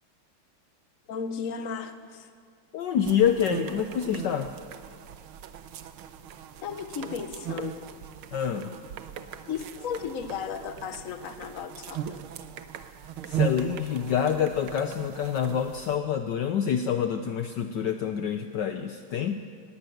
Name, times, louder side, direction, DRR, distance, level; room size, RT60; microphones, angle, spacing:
voice 1, 1.1-2.3 6.6-7.9 9.5-12.2, left 7 dB, 45° left, 9 dB, 1.3 m, -35 dB
voice 2, 2.7-4.5 8.3-8.8 13.2-19.4, left 8 dB, 65° left, 7 dB, 1.3 m, -27 dB
sound 1, 3.0-16.0, right 9 dB, 90° right, 1.7 m, -38 dB
19.5 x 17.5 x 7.9 m, 2.1 s
omnidirectional pair, 2.3 m